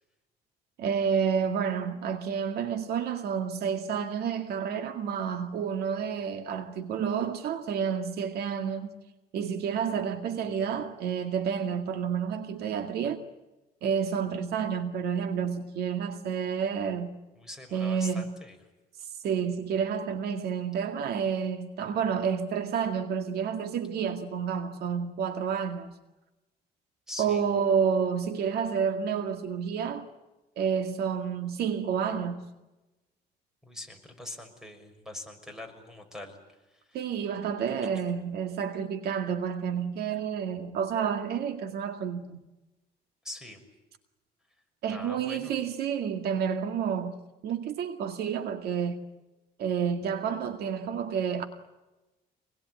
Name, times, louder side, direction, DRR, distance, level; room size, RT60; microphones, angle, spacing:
voice 1, 0.8-9.0 9.3-13.2 13.8-17.2 17.7-18.3 19.2-25.9 27.2-30.1 30.6-32.4 36.9-42.4 44.8-47.2 47.4-49.0 49.6-51.4, right 7 dB, 70° right, 2.1 m, -30 dB
voice 2, 17.4-18.6 27.1-27.4 33.6-36.4 36.9-37.0 43.2-43.6 44.9-45.5, left 1 dB, 5° right, 6.3 m, -42 dB
26.5 x 21.0 x 9.6 m
cardioid pair, 110°, 17 cm